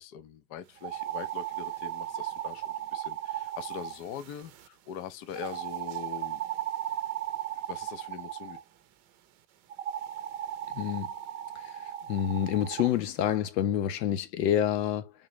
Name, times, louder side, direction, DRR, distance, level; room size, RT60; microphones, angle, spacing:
voice 1, 0.0-6.4 7.7-8.6, left 9 dB, 40° left, 0.6 m, -42 dB
sound 1, 0.8-4.7 5.3-8.6 9.7-12.9, right 12 dB, 40° right, 0.7 m, -36 dB
voice 2, 10.7-11.1 12.1-15.1, left 10 dB, 80° left, 1.0 m, -27 dB
3.9 x 3.0 x 3.1 m
supercardioid pair, 150°, 49 cm